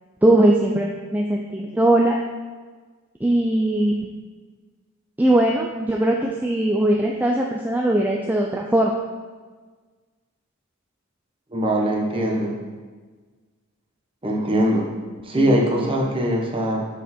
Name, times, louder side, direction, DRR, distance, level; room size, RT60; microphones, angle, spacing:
voice 1, 0.2-2.2 3.2-4.1 5.2-9.0 15.3-16.1, right 1 dB, 10° right, 0 dB, 0.4 m, -20 dB
voice 2, 11.5-12.5 14.2-14.9 15.2-16.9, right 1 dB, 25° right, -1 dB, 1.1 m, -21 dB
6.6 x 6.4 x 4.3 m, 1.4 s
head